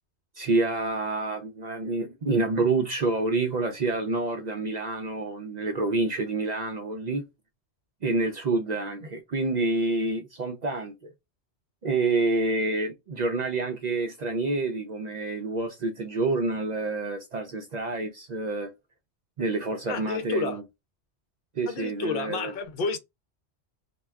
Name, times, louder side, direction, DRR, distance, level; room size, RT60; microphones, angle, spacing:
voice 1, 0.4-7.3 8.0-10.9 11.8-18.7 19.4-20.6 21.6-22.5, right 3 dB, 55° right, 0.5 m, -28 dB
voice 2, 19.9-20.6 21.7-23.0, left 4 dB, 60° left, 0.7 m, -30 dB
2.2 x 2.2 x 3.4 m
omnidirectional pair, 1.1 m